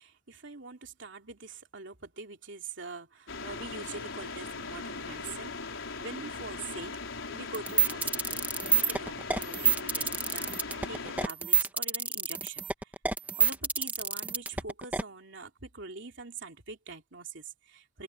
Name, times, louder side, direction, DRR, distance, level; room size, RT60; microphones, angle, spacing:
voice 1, 0.0-7.0 7.3-12.9 13.4-18.0, right 4 dB, 65° right, 3.3 m, -44 dB
sound 1, 3.3-11.3, left 4 dB, 85° left, 4.6 m, -39 dB
sound 2, 7.5-15.0, right 5 dB, 10° right, 1.4 m, -27 dB
head